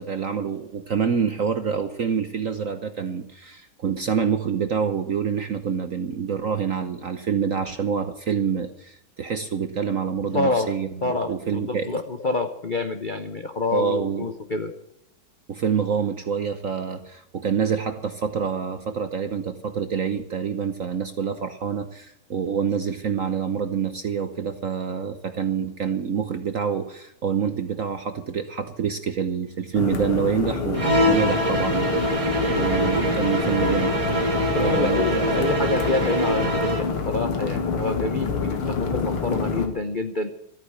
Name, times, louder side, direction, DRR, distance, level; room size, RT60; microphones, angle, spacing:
voice 1, 0.0-12.0 13.7-14.3 15.5-33.9 34.6-35.2, right 7 dB, 55° right, 9 dB, 0.9 m, -27 dB
voice 2, 10.3-10.7 11.0-14.7 34.5-40.3, left 3 dB, 45° left, 7 dB, 0.6 m, -27 dB
sound 1, 29.7-39.7, left 5 dB, 85° left, 2.6 m, -27 dB
sound 2, 30.7-36.9, right 1 dB, 15° right, 1.8 m, -24 dB
14.0 x 9.2 x 8.6 m, 0.78 s
omnidirectional pair, 2.3 m